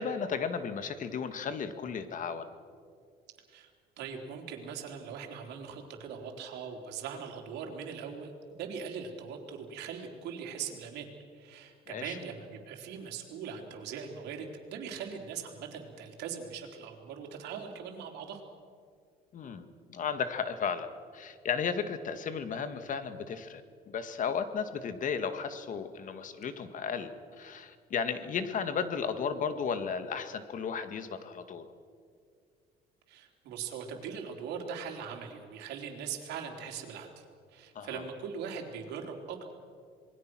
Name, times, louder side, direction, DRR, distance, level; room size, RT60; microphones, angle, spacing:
voice 1, 0.0-2.5 11.9-12.2 19.3-20.9 21.1-23.6 23.9-31.7 37.8-38.0, left 6 dB, 50° left, 9 dB, 1.9 m, -34 dB
voice 2, 4.0-11.1 11.3-18.4 33.1-37.2 37.5-39.5, right 6 dB, 85° right, 2 dB, 3.7 m, -41 dB
27.0 x 21.0 x 6.2 m, 2.1 s
cardioid pair, 110°, 17 cm